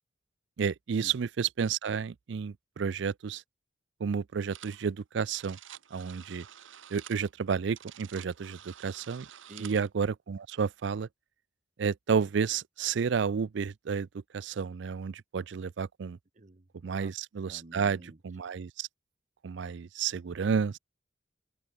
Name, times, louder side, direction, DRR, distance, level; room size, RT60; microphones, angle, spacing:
voice 1, 0.6-3.4 4.0-5.6 5.9-6.5 6.9-9.3 9.6-11.1 11.8-14.1 14.3-16.2 16.8-18.9 19.4-20.8, right 6 dB, 70° right, 0.4 m, -31 dB
sound 1, 4.5-4.9 5.1-9.9, right 10 dB, 85° right, 1.1 m, -49 dB
voice 2, 16.4-17.1 17.5-18.2, right 2 dB, 40° right, 0.9 m, -49 dB
open air
head